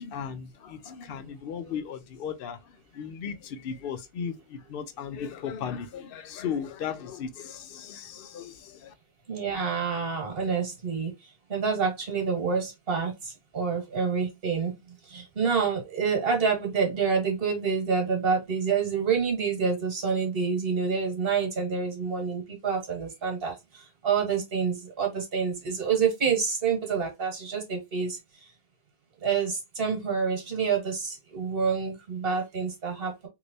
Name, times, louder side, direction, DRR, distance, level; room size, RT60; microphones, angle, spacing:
voice 1, 0.0-2.6 2.9-8.9, left 7 dB, 65° left, 0.8 m, -36 dB
voice 2, 9.3-11.1 11.5-14.7 15.1-28.2 29.2-33.3, right 6 dB, 65° right, 1.5 m, -27 dB
3.2 x 2.9 x 2.6 m
omnidirectional pair, 1.0 m